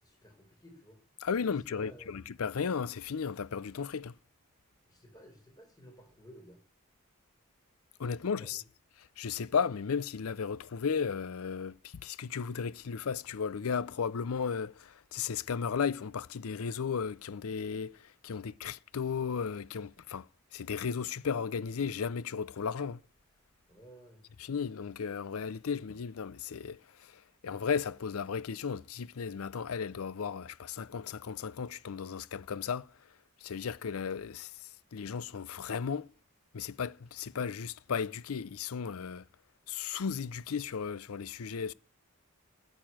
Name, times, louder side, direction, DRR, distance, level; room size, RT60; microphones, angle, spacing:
voice 1, 0.0-1.0 1.4-2.2 4.9-6.6 8.2-8.6 23.7-24.2, equal, 20° left, 4.8 m, -54 dB
voice 2, 1.2-4.1 8.0-8.6 9.2-11.8 12.0-18.0 18.2-20.3 20.5-23.0 24.4-26.8 27.4-32.9 33.4-34.5 34.9-36.1 36.5-39.2 39.7-41.7, left 6 dB, 90° left, 0.5 m, -35 dB
13.5 x 6.7 x 9.0 m
head